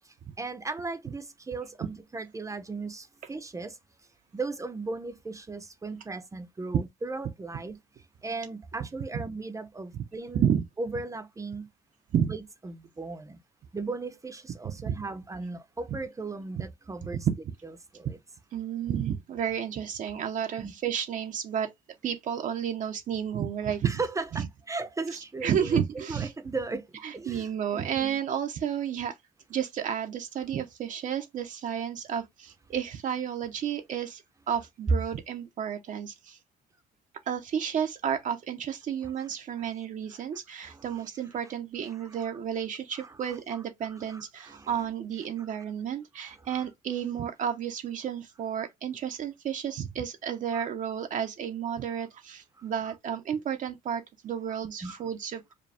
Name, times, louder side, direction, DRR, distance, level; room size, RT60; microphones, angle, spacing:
voice 1, 0.0-3.8 4.3-7.8 8.2-10.5 10.8-11.7 12.3-13.4 13.7-17.3 17.9-18.2 20.6-20.7 23.8-25.7 25.9-26.9 27.1-28.2 39.2-39.3 39.6-39.7 40.1-40.2 40.5-41.0 41.9-42.3 42.9-44.9 45.4-45.6 46.2-46.7 48.6-48.7 50.5-50.7 52.6-52.7 54.8-55.0, right 3 dB, 20° right, 0.8 m, -37 dB
voice 2, 14.6-15.0 17.3-17.4 18.5-21.7 22.0-24.0 24.3-24.4 25.1-26.3 27.0-29.2 29.5-36.4 37.3-55.5, right 8 dB, 50° right, 0.8 m, -31 dB
5.0 x 2.3 x 3.4 m
cardioid pair, 110°, 17 cm